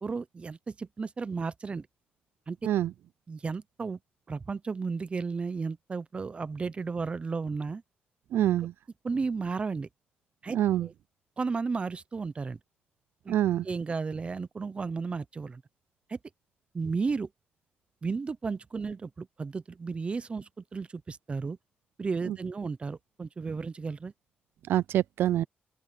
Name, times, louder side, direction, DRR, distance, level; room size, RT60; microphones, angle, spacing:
voice 1, 0.0-1.9 2.5-2.6 3.3-4.0 4.3-7.8 9.0-9.9 10.4-10.9 11.4-12.6 13.2-13.3 13.6-15.6 16.1-16.2 16.7-17.3 18.0-21.6 22.0-24.1, right 4 dB, 30° right, 0.7 m, -33 dB
voice 2, 8.3-8.7 10.5-10.9 13.3-13.6 22.3-22.4 24.7-25.4, right 12 dB, 80° right, 0.4 m, -25 dB
open air
cardioid pair, 110°, 4 cm